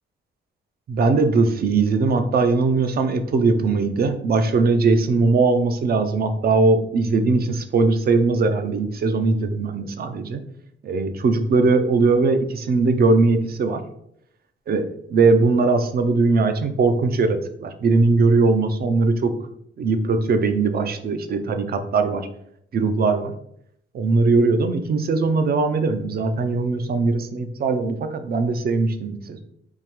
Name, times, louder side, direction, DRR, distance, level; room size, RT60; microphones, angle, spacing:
voice 1, 0.9-10.4 10.8-13.8 14.7-19.3 19.8-22.3 22.7-23.3 23.9-29.4, right 3 dB, 50° right, 8 dB, 0.5 m, -20 dB
3.7 x 2.7 x 3.0 m, 0.72 s
cardioid pair, 110°, 21 cm